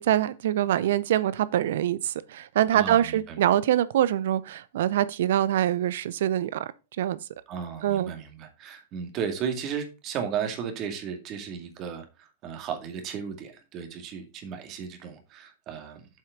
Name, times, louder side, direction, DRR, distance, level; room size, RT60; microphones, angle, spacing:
voice 1, 0.0-6.7 7.0-7.2 7.8-8.1, right 11 dB, 70° right, 0.6 m, -24 dB
voice 2, 2.7-3.4 7.5-16.1, right 7 dB, 40° right, 2.2 m, -35 dB
7.5 x 5.7 x 5.0 m
hypercardioid pair, 110°, 0 cm